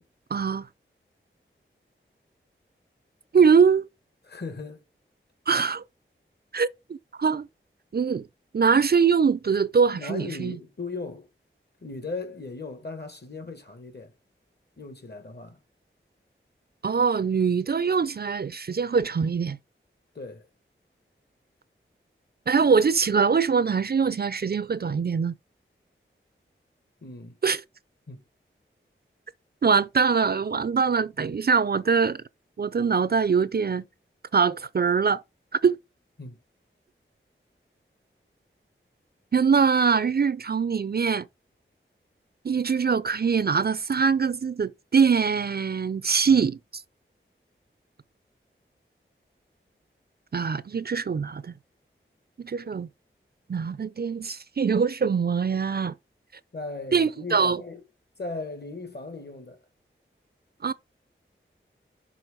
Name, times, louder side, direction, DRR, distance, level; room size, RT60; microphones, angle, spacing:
voice 1, 0.3-0.7 3.3-3.9 5.5-5.8 6.5-7.5 7.9-8.3 8.5-10.6 16.8-19.6 22.5-25.3 27.4-27.6 29.6-32.2 32.6-33.8 34.3-35.2 35.6-35.8 39.3-41.3 42.4-46.6 50.3-51.5 52.4-52.9 53.5-55.9 56.9-57.6 60.6-60.7, right 6 dB, 50° right, 0.4 m, -23 dB
voice 2, 4.2-4.8 9.9-11.3 11.8-14.1 14.8-15.6 20.1-20.5 27.0-27.4 28.1-28.2 36.2-36.4 46.3-46.5 56.5-57.8 58.2-59.6, left 3 dB, 55° left, 1.7 m, -37 dB
6.2 x 3.7 x 5.0 m
wide cardioid pair, 45°, 21 cm